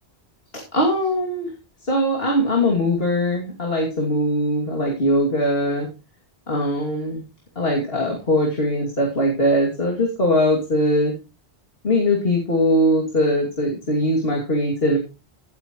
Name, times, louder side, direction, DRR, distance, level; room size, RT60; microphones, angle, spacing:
voice 1, 0.7-1.5 1.8-5.9 6.5-7.2 7.6-11.2 11.8-15.0, equal, 65° left, -2 dB, 2.9 m, -21 dB
16.5 x 8.7 x 3.1 m, 0.30 s
omnidirectional pair, 1.1 m